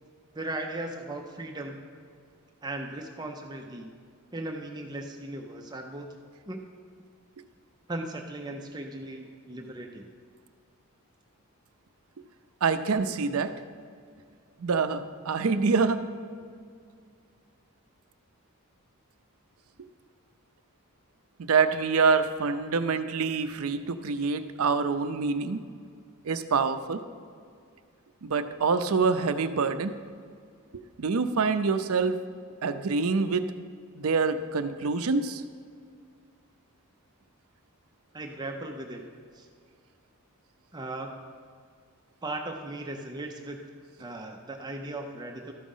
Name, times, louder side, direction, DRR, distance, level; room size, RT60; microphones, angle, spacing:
voice 1, 0.3-1.8 2.6-3.9 4.3-6.1 6.5-6.6 7.9-10.1 38.1-39.0 39.3-39.5 40.7-41.2 42.2-43.7 44.0-45.5, right 2 dB, 20° right, 3 dB, 0.6 m, -37 dB
voice 2, 12.6-13.5 14.6-16.0 21.4-25.6 26.2-27.0 28.2-29.9 30.7-32.2 32.6-33.4 33.9-35.4, right 4 dB, 70° right, 10 dB, 0.5 m, -26 dB
13.0 x 5.0 x 5.5 m, 2.2 s
head